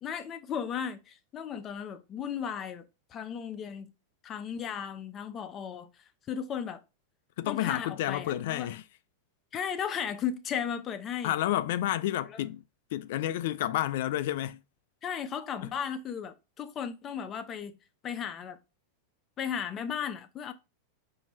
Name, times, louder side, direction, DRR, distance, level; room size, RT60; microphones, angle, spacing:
voice 1, 0.0-2.8 3.1-3.9 4.2-5.9 6.3-6.8 7.5-8.7 9.5-11.3 12.3-12.4 15.0-17.8 18.0-18.6 19.4-20.5, left 8 dB, 30° left, 0.7 m, -35 dB
voice 2, 7.4-8.8 11.2-12.6 12.9-14.6 15.6-15.7, left 13 dB, 65° left, 0.3 m, -30 dB
4.5 x 2.8 x 4.3 m
hypercardioid pair, 115°, 0 cm